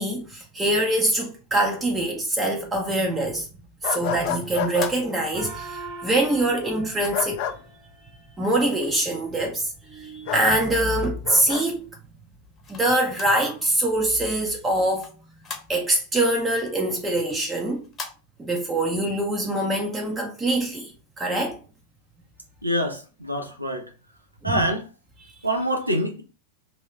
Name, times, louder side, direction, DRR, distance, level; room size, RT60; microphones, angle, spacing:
voice 1, 0.0-3.5 3.8-7.4 8.4-11.8 12.7-15.1 15.7-17.8 18.4-21.6 24.4-24.7, right 1 dB, 15° right, 0.6 m, -24 dB
sound 1, 3.8-4.9 7.1-7.6 10.3-10.5 11.2-11.6, left 8 dB, 45° left, 0.4 m, -28 dB
sound 2, 4.3-5.7 6.5-7.4 8.4-9.5 10.0-11.4 11.9-13.5 13.8-13.9 14.2-16.1 16.5-18.1, left 4 dB, 20° left, 0.8 m, -42 dB
Gong, 5.3-8.3, right 2 dB, 40° right, 1.6 m, -41 dB
voice 2, 22.6-23.9 24.4-24.9 25.4-26.2, equal, 85° right, 0.6 m, -25 dB
2.7 x 2.7 x 3.1 m
figure-of-eight pair, 90°, 0 cm